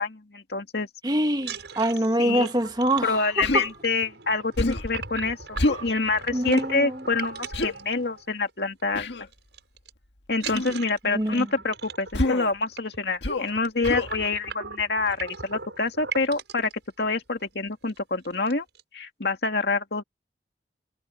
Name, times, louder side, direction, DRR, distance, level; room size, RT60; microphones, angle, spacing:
voice 1, 0.0-0.9 2.2-2.5 3.0-9.1 10.3-16.7 17.0-18.6 18.9-20.0, left 3 dB, 70° left, 2.2 m, -27 dB
voice 2, 1.0-3.7 6.3-7.0 11.0-11.5, right 1 dB, 25° right, 1.6 m, -25 dB
sound 1, 1.3-8.5 8.8-9.1 9.3-9.9 10.3-16.7 17.4-17.5 17.8-18.0 18.2-18.8, right 5 dB, 80° right, 6.5 m, -39 dB
Human voice, 3.4-3.7 4.6-4.9 5.6-5.9 7.5-7.7 8.9-9.3 10.5-10.7 12.1-12.5 13.2-13.5 13.8-14.1, left 2 dB, 85° left, 1.8 m, -26 dB
head